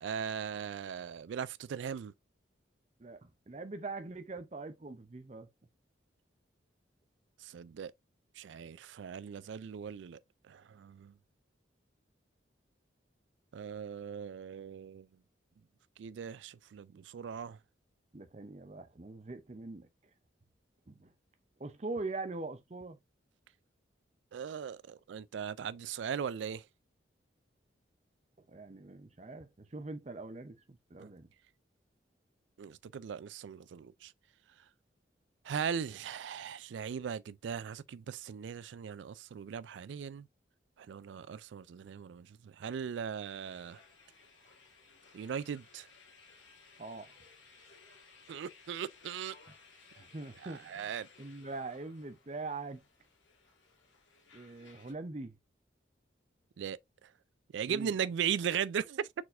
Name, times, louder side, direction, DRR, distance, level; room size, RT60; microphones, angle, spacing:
voice 1, 0.0-2.1 7.4-7.9 8.4-10.2 10.5-11.1 13.5-15.1 16.0-17.6 24.3-26.6 31.0-31.1 32.6-34.1 35.4-40.3 40.8-43.8 45.1-45.9 48.3-49.4 50.4-51.1 56.6-56.8 57.5-59.1, right 7 dB, 75° right, 0.3 m, -38 dB
voice 2, 3.0-5.5 18.1-19.9 20.9-21.1 21.6-23.0 28.5-31.3 46.8-47.1 50.0-50.9 51.2-52.8 54.3-55.4 57.7-57.9, right 3 dB, 35° right, 0.6 m, -42 dB
sound 1, 43.2-54.9, left 4 dB, 85° left, 1.8 m, -60 dB
4.4 x 4.1 x 2.5 m
head